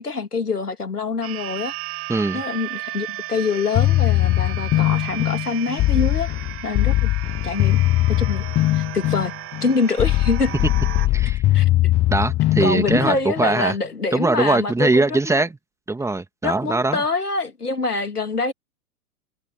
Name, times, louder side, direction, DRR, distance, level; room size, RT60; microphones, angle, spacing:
voice 1, 0.0-1.7 2.3-6.3 6.6-7.1 7.4-7.8 8.1-8.4 8.7-9.3 9.6-10.5 11.5-11.7 12.6-15.4 16.4-18.5, left 4 dB, 85° left, 3.1 m, -25 dB
sound 1, 1.2-11.1, right 17 dB, 30° right, 3.6 m, -35 dB
voice 2, 2.1-2.4 11.1-11.4 12.1-13.8 14.1-15.6 15.9-17.0, right 2 dB, 5° right, 2.4 m, -21 dB
sound 2, 3.8-13.5, left 16 dB, 15° left, 0.5 m, -20 dB
figure-of-eight pair, 105°, 45 cm